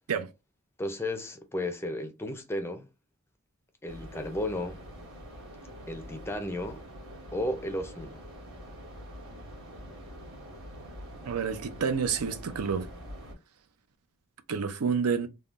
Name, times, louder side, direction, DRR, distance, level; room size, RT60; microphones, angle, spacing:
voice 1, 0.8-2.9 3.8-4.8 5.9-6.8 7.3-8.2, left 1 dB, 10° left, 0.4 m, -34 dB
sound 1, 3.9-13.4, equal, 65° right, 1.4 m, -45 dB
voice 2, 11.3-12.9 14.5-15.3, right 6 dB, 85° right, 0.5 m, -29 dB
3.5 x 2.1 x 2.4 m
head